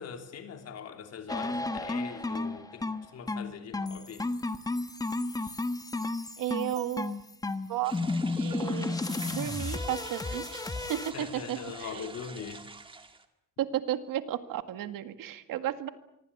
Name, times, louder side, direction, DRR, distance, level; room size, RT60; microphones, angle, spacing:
voice 1, 0.0-4.3 11.1-12.6, left 7 dB, 50° left, 6 dB, 3.3 m, -42 dB
sound 1, 1.3-11.1, left 2 dB, 10° left, 1.1 m, -33 dB
voice 2, 6.4-7.2 7.7-9.0 9.3-10.6 10.9-12.1 13.6-15.9, right 12 dB, 75° right, 10 dB, 2.0 m, -33 dB
sound 2, 7.8-13.2, right 3 dB, 15° right, 1.9 m, -46 dB
25.5 x 24.0 x 8.6 m, 0.84 s
cardioid pair, 165°, 33 cm